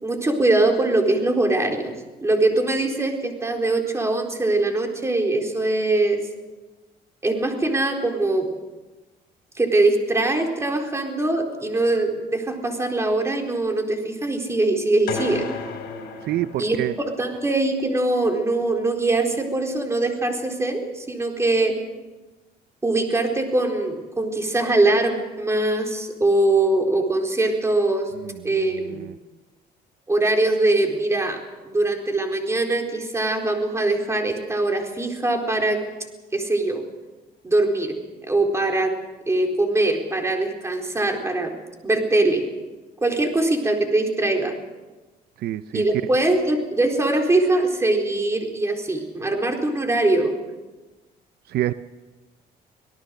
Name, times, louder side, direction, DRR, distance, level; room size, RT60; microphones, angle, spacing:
voice 1, 0.0-1.9 2.2-6.2 7.2-8.5 9.6-15.5 16.6-16.8 17.2-21.8 22.8-28.1 28.4-29.1 30.1-31.4 31.7-35.8 36.3-36.8 37.4-38.0 38.2-38.9 39.3-41.5 41.8-42.4 43.0-44.5 45.7-50.4, right 2 dB, 15° right, 2 dB, 4.2 m, -22 dB
sound 1, 15.1-17.2, left 4 dB, 70° left, 6.8 m, -33 dB
voice 2, 16.2-17.0 28.1-29.1 45.4-45.8 51.5-51.7, right 14 dB, 70° right, 12 dB, 0.7 m, -28 dB
26.0 x 18.0 x 6.5 m, 1.2 s
cardioid pair, 110°, 17 cm